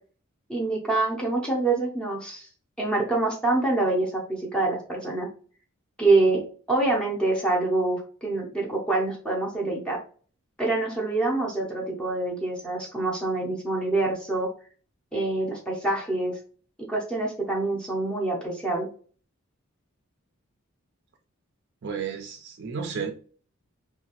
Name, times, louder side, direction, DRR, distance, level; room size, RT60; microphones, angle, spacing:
voice 1, 0.5-2.5 2.8-5.3 6.0-6.4 6.7-10.0 10.6-14.5 15.1-16.4 16.9-18.9, right 2 dB, 5° left, -2 dB, 0.6 m, -26 dB
voice 2, 21.8-23.1, right 6 dB, 50° right, 4 dB, 0.4 m, -32 dB
2.8 x 2.3 x 2.9 m, 0.41 s
head